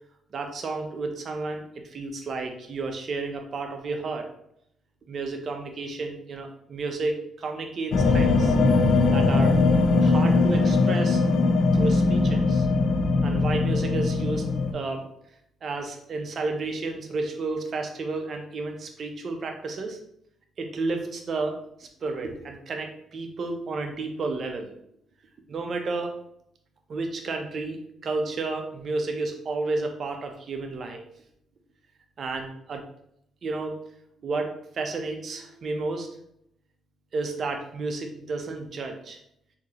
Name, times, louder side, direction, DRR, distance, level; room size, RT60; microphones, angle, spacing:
voice 1, 0.3-4.3 5.1-8.5 9.1-9.6 10.0-11.2 11.7-12.7 13.2-14.5 14.7-15.1 15.6-20.0 20.6-24.7 25.5-26.2 26.9-31.0 32.2-32.9 33.4-33.8 34.2-36.1 37.1-39.2, right 3 dB, 50° right, 4 dB, 0.6 m, -31 dB
sound 1, 7.9-14.7, left 3 dB, 70° left, 0.4 m, -21 dB
3.7 x 2.8 x 2.8 m, 0.73 s
cardioid pair, 90°, 0 cm